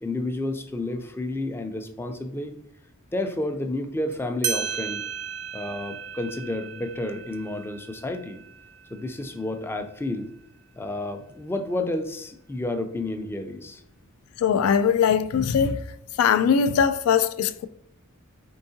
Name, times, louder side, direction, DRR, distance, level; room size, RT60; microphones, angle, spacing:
voice 1, 0.0-2.5 3.1-5.0 5.5-8.4 8.9-10.3 10.8-13.8, left 2 dB, 10° left, 0.3 m, -30 dB
sound 1, 4.1-4.2 4.4-9.5, right 7 dB, 80° right, 0.5 m, -35 dB
voice 2, 14.4-15.8 16.2-17.7, left 7 dB, 90° left, 0.3 m, -21 dB
4.6 x 3.5 x 2.7 m
head